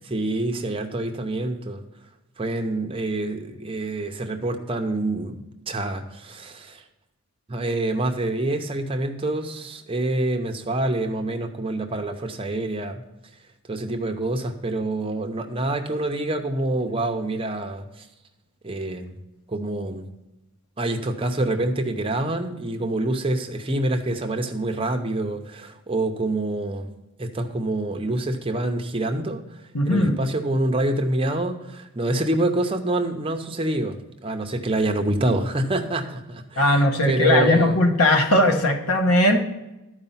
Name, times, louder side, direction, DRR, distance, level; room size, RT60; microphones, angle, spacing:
voice 1, 0.0-1.8 2.4-6.8 7.5-13.0 13.7-18.1 18.6-19.2 19.5-20.1 20.8-26.9 27.2-37.8, right 2 dB, 25° right, 5 dB, 0.7 m, -26 dB
voice 2, 29.7-30.2 36.6-39.4, left 1 dB, 80° left, 4 dB, 1.3 m, -19 dB
12.0 x 4.9 x 5.6 m, 0.97 s
head